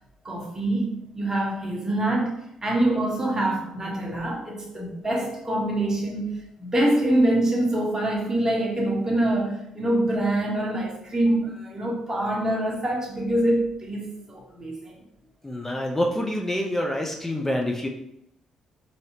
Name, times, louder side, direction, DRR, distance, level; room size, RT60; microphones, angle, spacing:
voice 1, 0.2-15.0, right 1 dB, 25° right, 0 dB, 1.3 m, -25 dB
voice 2, 15.4-17.9, left 1 dB, 15° left, 1 dB, 0.6 m, -26 dB
4.7 x 2.8 x 2.8 m, 0.76 s
hypercardioid pair, 45°, 2 cm